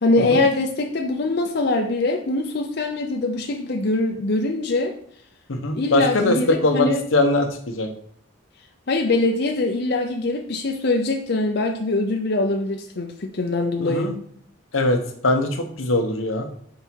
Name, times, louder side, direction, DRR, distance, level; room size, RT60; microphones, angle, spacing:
voice 1, 0.0-4.9 5.7-7.0 8.9-14.1, left 2 dB, 55° left, 3 dB, 0.6 m, -23 dB
voice 2, 5.5-7.9 13.8-14.1 14.7-15.0 15.2-16.5, left 2 dB, 85° left, 4 dB, 1.0 m, -21 dB
5.5 x 4.8 x 4.5 m, 0.63 s
head